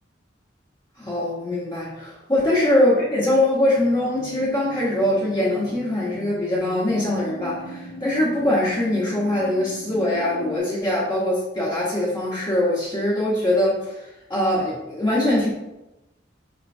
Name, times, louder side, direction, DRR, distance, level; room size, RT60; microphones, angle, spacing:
voice 1, 1.0-15.5, left 1 dB, 20° left, -8 dB, 1.0 m, -22 dB
sound 1, 3.8-10.6, equal, 70° right, 1.4 m, -39 dB
4.5 x 4.3 x 2.6 m, 0.96 s
head